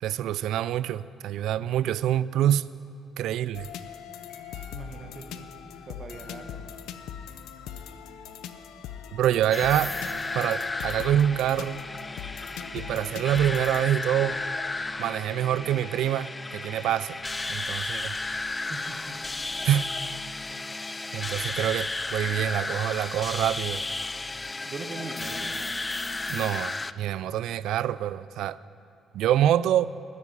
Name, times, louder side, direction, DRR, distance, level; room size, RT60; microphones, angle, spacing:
voice 1, 0.0-2.6 3.2-3.7 9.1-9.9 10.3-11.8 12.7-14.4 15.0-17.2 17.5-18.1 19.6-19.9 21.1-23.8 26.3-28.6 29.1-29.9, right 11 dB, 75° right, 17 dB, 0.3 m, -26 dB
sound 1, 3.5-14.7, left 8 dB, 90° left, 0.7 m, -41 dB
Piano, 4.3-5.4, right 2 dB, 45° left, 3.0 m, -57 dB
voice 2, 4.7-5.5 5.9-6.5 18.7-19.0 24.6-25.8, right 3 dB, 30° right, 4 dB, 1.4 m, -40 dB
sound 2, 9.5-26.9, left 2 dB, 15° left, 0.3 m, -33 dB
15.0 x 9.5 x 9.8 m, 2.7 s
cardioid pair, 155°, 0 cm